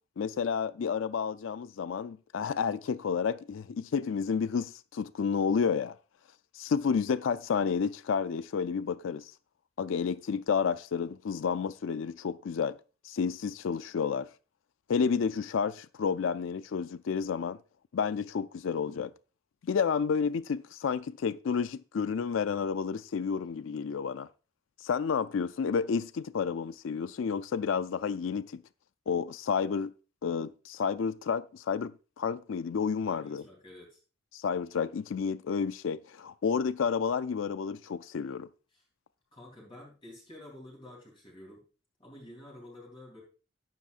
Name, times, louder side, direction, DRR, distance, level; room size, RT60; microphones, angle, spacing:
voice 1, 0.2-6.0 6.5-9.3 9.8-12.8 13.0-14.3 14.9-17.6 17.9-19.1 19.6-24.3 24.8-28.6 29.1-29.9 30.2-33.4 34.3-38.5, left 6 dB, 70° left, 0.4 m, -30 dB
voice 2, 33.0-34.0 38.7-38.8 39.3-41.6 42.0-43.2, left 1 dB, 25° left, 3.1 m, -50 dB
12.0 x 10.0 x 2.5 m
head